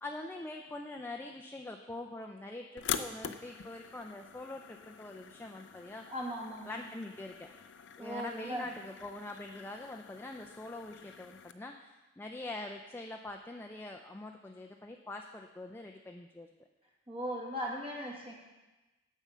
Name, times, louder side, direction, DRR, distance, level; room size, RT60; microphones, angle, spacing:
voice 1, 0.0-6.0 6.7-7.5 8.0-16.5, left 2 dB, 10° left, 2 dB, 0.4 m, -44 dB
sound 1, 2.8-11.5, left 8 dB, 85° left, 0.4 m, -44 dB
voice 2, 6.1-6.9 8.0-8.7 17.1-18.3, equal, 30° right, -2 dB, 1.7 m, -38 dB
7.3 x 7.2 x 5.5 m, 1.1 s
head